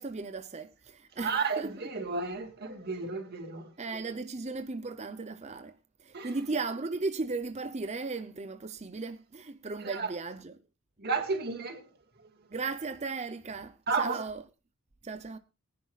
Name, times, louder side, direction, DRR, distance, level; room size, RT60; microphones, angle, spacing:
voice 1, 0.0-1.7 3.8-10.5 12.5-14.4 15.0-15.4, right 3 dB, 30° right, 0.7 m, -36 dB
voice 2, 1.2-3.7 6.1-6.4 9.8-10.1 11.0-11.9 13.9-14.2, right 4 dB, 50° right, 2.2 m, -32 dB
22.5 x 10.5 x 2.4 m
head